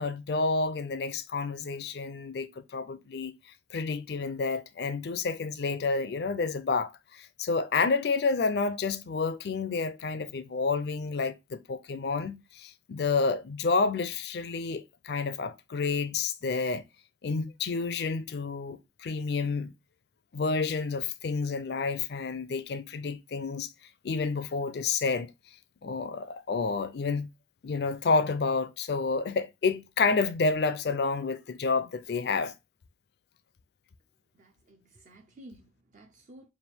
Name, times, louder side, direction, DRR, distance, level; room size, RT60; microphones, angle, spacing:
voice 1, 0.0-3.3 3.7-16.8 17.2-19.7 20.3-23.7 24.0-25.3 25.8-27.3 27.6-32.5, left 4 dB, 60° left, 0.4 m, -29 dB
voice 2, 34.3-36.5, right 1 dB, 40° right, 0.4 m, -53 dB
3.4 x 2.5 x 4.4 m
head